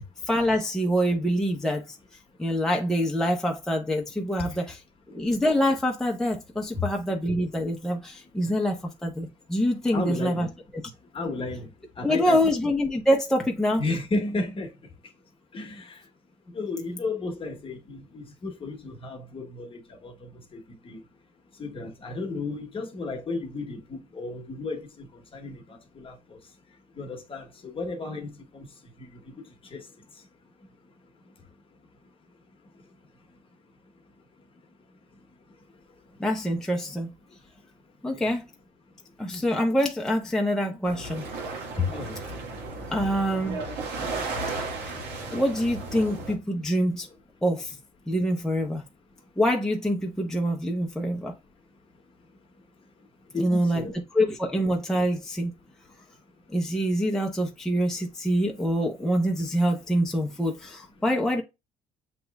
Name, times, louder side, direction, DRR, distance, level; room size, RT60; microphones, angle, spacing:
voice 1, 0.3-2.0 2.4-4.8 5.1-10.5 12.0-13.8 36.2-37.1 38.0-38.5 39.2-41.2 42.9-43.6 45.3-47.1 47.4-47.8 48.1-48.8 49.4-51.3 53.4-53.9 54.1-55.5 56.5-61.4, equal, 5° left, 0.7 m, -25 dB
voice 2, 9.9-10.5 11.1-11.7 12.0-12.5 13.8-14.7 15.5-15.9 16.5-20.1 20.5-21.0 21.6-25.1 25.3-25.6 26.0-26.1 27.0-28.3 28.5-28.7 29.3-29.4 29.7-29.8 38.1-38.3 41.8-42.2 53.3-54.0, left 3 dB, 30° left, 1.1 m, -33 dB
sound 1, 40.8-46.4, right 3 dB, 90° right, 1.7 m, -34 dB
7.6 x 3.0 x 2.3 m
cardioid pair, 110°, 17 cm